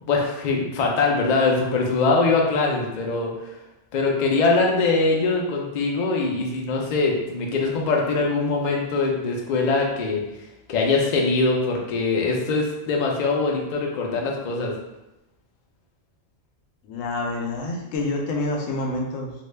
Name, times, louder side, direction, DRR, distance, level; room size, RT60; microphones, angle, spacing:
voice 1, 0.0-3.3 3.9-10.2 10.7-14.7, left 3 dB, 60° left, 0 dB, 0.4 m, -22 dB
voice 2, 16.8-19.3, left 2 dB, 85° left, 0 dB, 1.0 m, -27 dB
2.6 x 2.2 x 3.2 m, 0.95 s
omnidirectional pair, 1.3 m